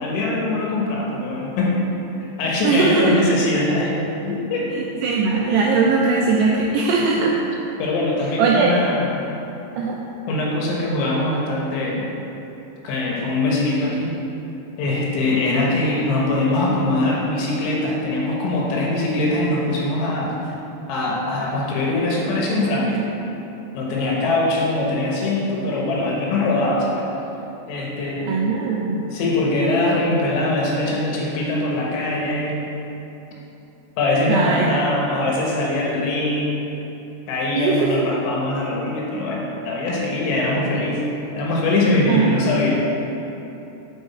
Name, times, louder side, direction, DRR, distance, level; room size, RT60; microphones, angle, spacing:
voice 1, 0.0-1.8 2.4-4.0 4.2-4.7 7.8-9.2 10.3-12.1 12.8-14.1 14.8-20.5 20.9-23.2 23.7-27.1 27.7-28.4 28.9-32.7 34.0-36.6 37.3-41.0 41.4-42.9, left 2 dB, 80° left, -3 dB, 3.5 m, -22 dB
voice 2, 2.6-3.2 4.7-7.4 8.4-8.7 9.8-10.0 28.3-29.0 34.3-34.7 37.6-37.9 42.1-42.4, right 4 dB, 85° right, -2 dB, 2.4 m, -19 dB
11.0 x 4.9 x 4.2 m, 3.0 s
omnidirectional pair, 5.4 m